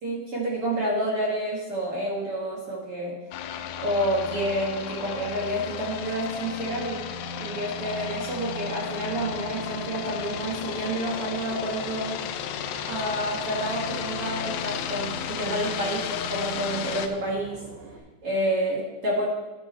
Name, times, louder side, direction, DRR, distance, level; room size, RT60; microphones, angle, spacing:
voice 1, 0.0-3.1 3.8-7.0 7.4-12.2 12.9-17.6 18.2-19.2, right 1 dB, 50° right, -4 dB, 1.8 m, -29 dB
sound 1, 3.3-17.1, left 8 dB, 80° left, 2.6 m, -34 dB
Boat Water vehicle / Engine, 9.0-18.0, right 4 dB, 85° right, 3.8 m, -45 dB
13.5 x 9.6 x 4.4 m, 1.1 s
omnidirectional pair, 5.1 m